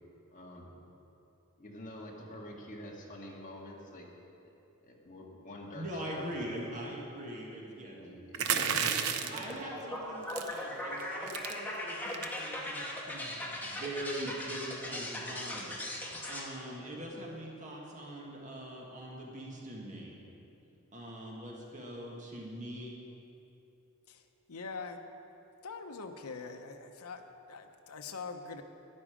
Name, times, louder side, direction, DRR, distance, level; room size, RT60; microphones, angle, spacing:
voice 1, 0.3-0.7 1.6-4.1 4.8-6.4 7.9-9.6, left 1 dB, 35° left, -2 dB, 1.8 m, -46 dB
voice 2, 5.7-8.0 8.5-9.0 9.3-20.1 20.9-22.9, right 1 dB, 35° right, -2 dB, 1.6 m, -42 dB
sound 1, 8.3-9.5 10.3-10.6 11.0-11.1 11.3-11.5 12.1-12.4, right 8 dB, 75° right, 0.7 m, -31 dB
sound 2, 9.5-16.4, left 1 dB, 10° left, 1.3 m, -39 dB
voice 3, 24.1-25.0 25.6-28.6, left 4 dB, 80° left, 5 dB, 0.8 m, -43 dB
12.5 x 9.9 x 5.0 m, 2.9 s
head